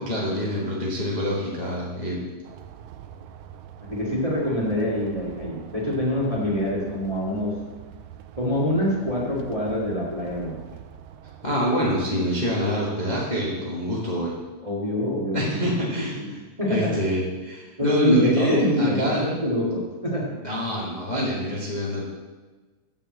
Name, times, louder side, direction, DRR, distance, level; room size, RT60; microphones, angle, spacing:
voice 1, 0.0-2.2 11.4-14.3 15.3-16.4 16.7-19.3 20.4-22.0, equal, 30° left, -5 dB, 0.7 m, -25 dB
sound 1, 2.4-11.6, right 9 dB, 80° right, 1.9 m, -44 dB
voice 2, 3.8-7.6 8.3-10.6 14.6-15.6 16.2-16.3 16.6-16.9 17.8-20.4, left 1 dB, 15° right, -5 dB, 1.3 m, -25 dB
7.3 x 6.5 x 7.7 m, 1.3 s
omnidirectional pair, 3.6 m